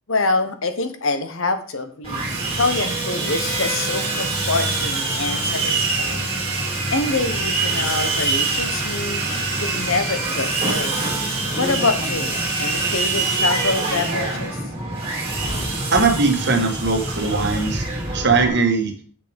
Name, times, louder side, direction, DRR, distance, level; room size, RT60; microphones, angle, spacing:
voice 1, 0.1-2.2 2.5-6.3 6.9-9.2 9.6-11.0 11.6-14.6, left 3 dB, 60° left, 9 dB, 1.0 m, -25 dB
Sawing, 2.0-18.5, right 2 dB, 25° right, 3.0 m, -24 dB
voice 2, 15.9-17.8 18.1-18.9, right 4 dB, 50° right, 4 dB, 1.6 m, -19 dB
7.7 x 6.7 x 5.1 m, 0.42 s
head